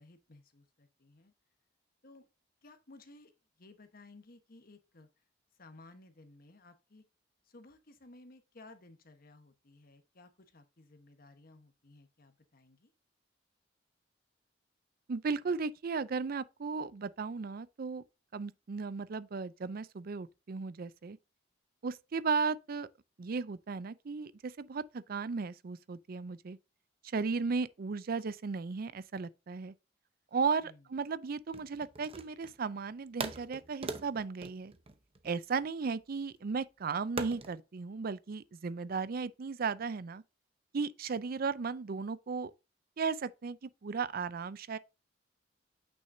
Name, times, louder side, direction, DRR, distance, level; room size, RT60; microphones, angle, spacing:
voice 1, 0.0-1.3 2.0-2.3 2.6-3.3 3.6-5.1 5.6-7.0 7.4-12.9 30.6-30.8, left 2 dB, 50° left, 1.2 m, -57 dB
voice 2, 15.1-18.0 18.3-21.2 21.8-22.9 23.2-26.6 27.1-29.7 30.3-34.7 35.2-40.2 40.7-42.5 43.0-44.8, right 5 dB, 55° right, 0.5 m, -35 dB
sound 1, 31.5-32.6 33.2-35.7 37.2-37.6, right 3 dB, 30° right, 0.8 m, -41 dB
8.6 x 6.2 x 2.7 m
head